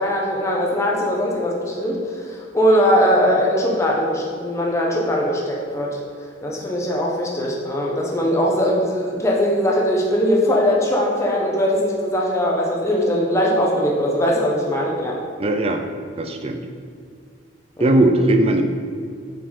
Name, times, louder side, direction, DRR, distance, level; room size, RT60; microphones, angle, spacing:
voice 1, 0.0-2.0 2.3-5.9 6.4-15.2 17.8-17.9, equal, 15° left, -3 dB, 0.8 m, -20 dB
voice 2, 15.4-15.8 16.2-16.6 17.8-18.6, right 1 dB, 30° right, 6 dB, 0.4 m, -18 dB
5.6 x 4.7 x 4.3 m, 2.2 s
head